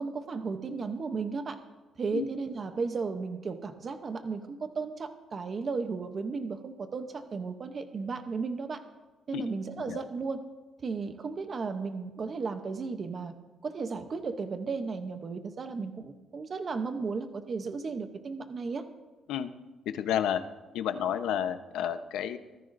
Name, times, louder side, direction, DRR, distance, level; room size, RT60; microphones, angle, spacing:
voice 1, 0.0-1.6 2.0-8.8 9.3-10.4 10.8-13.3 13.6-18.8, right 4 dB, 30° right, 8 dB, 0.8 m, -34 dB
voice 2, 19.9-20.4 20.7-22.4, left 9 dB, 85° left, 9 dB, 0.9 m, -30 dB
24.0 x 14.0 x 2.6 m, 1.2 s
cardioid pair, 180°, 0 cm